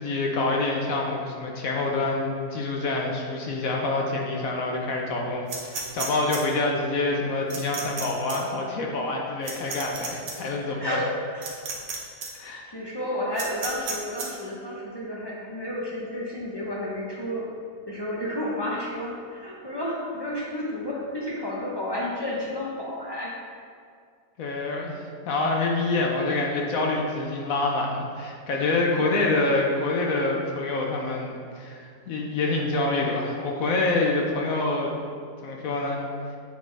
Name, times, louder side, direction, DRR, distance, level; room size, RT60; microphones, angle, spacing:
voice 1, 0.0-11.0 12.3-12.7 24.4-35.0 35.4-36.0, left 2 dB, 65° left, 0 dB, 1.0 m, -26 dB
sound 1, 5.5-6.4 7.5-8.0 8.3-8.4 9.4-10.3 11.4-11.9 12.2-12.3 13.4-14.3, right 4 dB, 90° right, 1.6 m, -32 dB
voice 2, 10.4-11.5 12.7-17.5 17.9-23.4 28.9-29.2, left 1 dB, 35° left, -5 dB, 0.4 m, -31 dB
8.2 x 4.0 x 3.3 m, 2.2 s
omnidirectional pair, 1.8 m